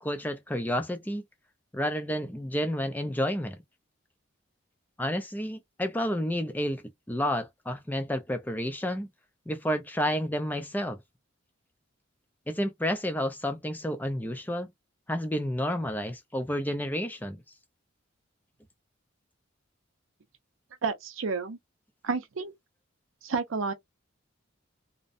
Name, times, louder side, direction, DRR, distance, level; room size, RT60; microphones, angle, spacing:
voice 1, 0.0-1.2 1.7-3.6 5.0-9.1 9.5-11.0 12.5-14.7 15.1-17.4, equal, 10° left, 0.4 m, -30 dB
voice 2, 20.8-21.6 22.0-22.5 23.2-23.7, right 4 dB, 80° right, 0.6 m, -30 dB
2.6 x 2.1 x 2.4 m
head